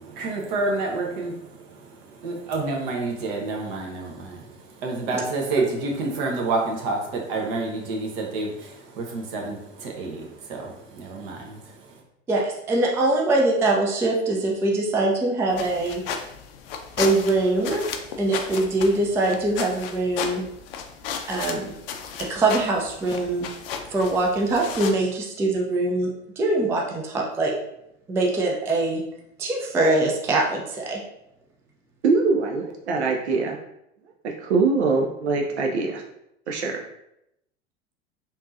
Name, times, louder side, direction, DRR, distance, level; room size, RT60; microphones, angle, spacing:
voice 1, 0.0-11.9, right 3 dB, 50° right, 0 dB, 0.9 m, -29 dB
voice 2, 12.3-16.0 17.0-17.8 18.2-20.4 21.3-21.7 22.3-23.4 23.9-27.5 28.1-29.0 29.4-31.0, right 2 dB, 10° right, 0 dB, 0.3 m, -23 dB
sound 1, 15.5-24.9, left 6 dB, 55° left, 0.5 m, -34 dB
voice 3, 32.0-33.6 34.4-36.0 36.5-36.8, right 4 dB, 70° right, 1 dB, 0.5 m, -23 dB
3.6 x 2.7 x 2.5 m, 0.83 s
figure-of-eight pair, 75°, 34 cm